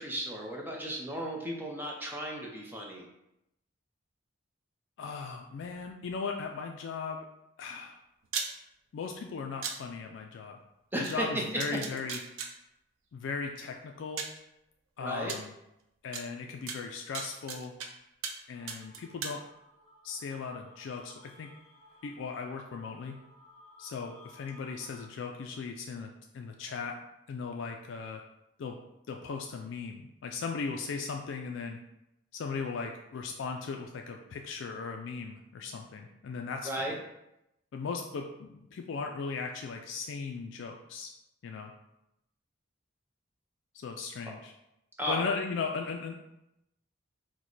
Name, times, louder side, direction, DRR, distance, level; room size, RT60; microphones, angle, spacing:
voice 1, 0.0-3.1 10.9-11.4 15.0-15.3 36.6-36.9 45.0-45.2, right 1 dB, 10° right, -1 dB, 0.6 m, -35 dB
voice 2, 5.0-7.2 7.6-8.0 8.9-10.6 11.0-12.2 13.1-14.2 15.0-15.5 16.0-17.7 18.5-19.4 20.0-21.5 22.0-23.2 23.8-26.1 26.3-26.9 27.3-28.2 28.6-28.8 29.1-31.8 32.3-37.0 37.7-41.1 41.4-41.7 43.7-44.5 45.1-46.2, left 5 dB, 65° left, 3 dB, 0.3 m, -37 dB
sound 1, 8.2-8.5 9.6-9.7 11.0-11.1 11.6-12.5 13.6-13.7 14.2-14.4 15.3-15.4 16.1-16.2 16.7-17.9 18.2-18.4 18.7-19.3, right 5 dB, 85° right, 0.5 m, -36 dB
sound 2, 18.5-25.1, left 2 dB, 30° left, 0.8 m, -58 dB
4.6 x 2.1 x 3.9 m, 0.86 s
head